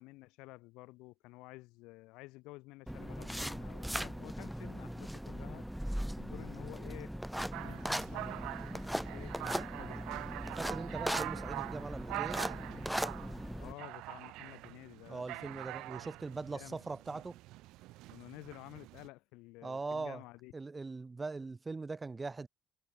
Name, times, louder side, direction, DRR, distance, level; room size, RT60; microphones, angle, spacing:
voice 1, 0.0-5.7 6.2-7.1 7.5-10.3 13.6-16.1 16.5-16.8 18.1-20.5, left 22 dB, 85° left, 4.7 m, -52 dB
sound 1, 2.9-13.7, equal, ahead, 7.4 m, -39 dB
sound 2, 7.5-19.1, right 19 dB, 80° right, 3.3 m, -44 dB
voice 2, 10.5-12.5 15.1-17.4 19.6-20.2 20.5-22.5, right 3 dB, 25° right, 3.8 m, -41 dB
supercardioid pair, 80°, 0 cm